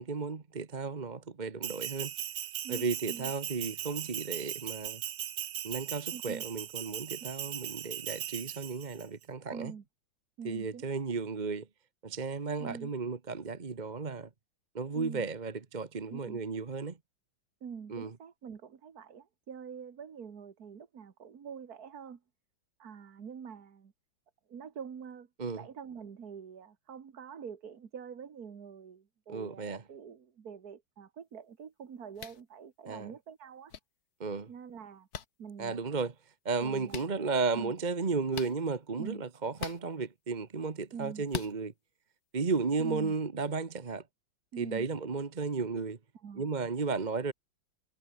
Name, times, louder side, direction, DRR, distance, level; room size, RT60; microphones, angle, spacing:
voice 1, 0.0-2.1 2.7-5.0 5.6-9.7 10.4-11.7 12.0-14.3 14.7-17.0 17.9-18.1 25.4-25.6 29.3-29.8 32.9-33.1 34.2-34.5 35.6-36.1 36.4-41.7 42.3-44.0 44.6-46.0 46.3-47.3, right 4 dB, 30° right, 1.0 m, -34 dB
Bell, 1.6-9.0, right 11 dB, 65° right, 1.6 m, -39 dB
voice 2, 2.6-3.3 6.1-6.4 9.5-9.8 10.4-11.1 12.6-12.9 14.9-15.3 16.1-16.4 17.6-22.2 22.8-23.9 24.5-25.3 25.6-33.7 34.5-35.1 35.4-36.1 36.6-37.1 37.5-37.7 39.0-39.2 40.9-41.2 42.8-43.1 44.5-44.8 46.2-46.5, right 7 dB, 50° right, 2.0 m, -45 dB
sound 1, 32.2-32.4 33.7-33.8 35.1-35.3 36.9-37.1 38.3-38.5 39.6-39.8 41.3-41.5, left 7 dB, 50° left, 1.8 m, -39 dB
omnidirectional pair, 2.1 m